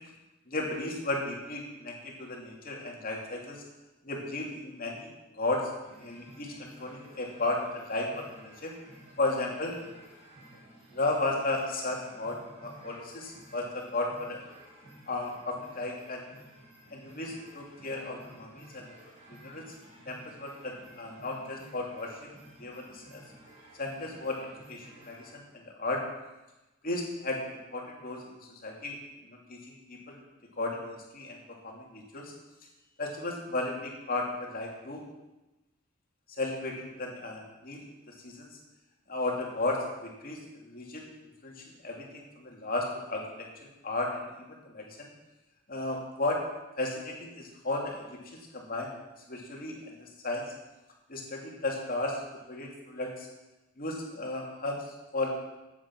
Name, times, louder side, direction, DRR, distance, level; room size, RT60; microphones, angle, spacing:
voice 1, 0.5-3.6 4.0-5.6 6.0-8.7 9.2-9.7 10.9-14.4 15.1-16.3 16.9-18.9 19.3-19.6 20.1-22.3 22.6-23.2 23.8-26.0 26.8-29.0 29.2-30.2 30.6-31.4 31.6-32.3 33.0-35.0 36.4-37.8 38.2-38.5 39.1-41.1 41.4-44.3 44.6-45.1 45.7-46.4 46.8-48.9 49.3-50.5 51.1-52.2 52.5-53.3 53.8-55.4, left 2 dB, 40° left, 0 dB, 2.8 m, -34 dB
sound 1, 5.8-25.3, right 1 dB, 35° right, 5.2 m, -54 dB
14.0 x 8.9 x 6.1 m, 1.0 s
head